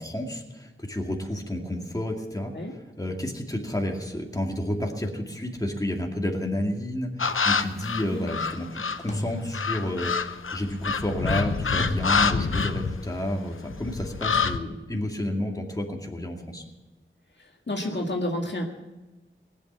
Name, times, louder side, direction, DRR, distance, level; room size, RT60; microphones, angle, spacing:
voice 1, 0.0-16.6, left 1 dB, 15° left, 0 dB, 2.3 m, -31 dB
sound 1, 7.2-9.1 9.5-13.4 13.7-14.6, left 5 dB, 80° left, 0.7 m, -27 dB
sound 2, 7.2-7.6 9.1-10.3 11.8-13.0, left 1 dB, 35° left, 1.6 m, -36 dB
voice 2, 17.7-18.6, left 1 dB, 60° left, 1 dB, 2.0 m, -29 dB
18.5 x 8.9 x 7.5 m, 1.1 s
wide cardioid pair, 45°, 21 cm